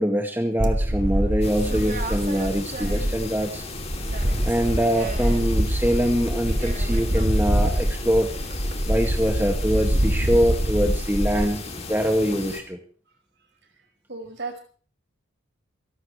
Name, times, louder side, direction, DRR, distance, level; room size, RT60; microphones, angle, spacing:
voice 1, 0.0-3.7 4.5-8.3 8.9-12.8, equal, 10° right, 3 dB, 1.9 m, -24 dB
sound 1, 0.6-3.5 3.8-11.5, right 1 dB, 40° right, 1.8 m, -25 dB
sound 2, 1.4-12.6, left 3 dB, 30° left, 2.7 m, -36 dB
voice 2, 14.1-14.6, right 3 dB, 55° right, 4 dB, 5.3 m, -34 dB
28.0 x 12.0 x 3.2 m, 0.41 s
head